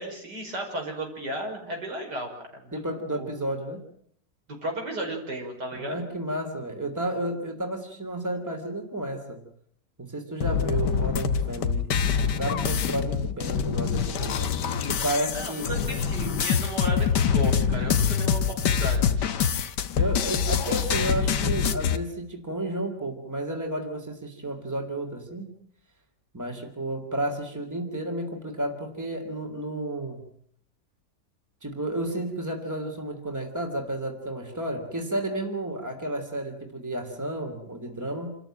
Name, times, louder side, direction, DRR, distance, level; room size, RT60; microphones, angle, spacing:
voice 1, 0.0-2.8 3.1-3.3 4.6-6.0 15.3-19.4, right 1 dB, 80° right, 1 dB, 6.2 m, -34 dB
voice 2, 2.7-3.8 5.7-9.4 10.0-11.9 12.2-14.5 14.9-15.7 20.0-25.5 26.3-30.3 31.6-38.4, right 1 dB, 10° right, 4 dB, 3.1 m, -32 dB
sound 1, 10.4-22.0, left 7 dB, 85° left, 1.7 m, -25 dB
28.0 x 14.0 x 9.0 m, 0.67 s
omnidirectional pair, 1.8 m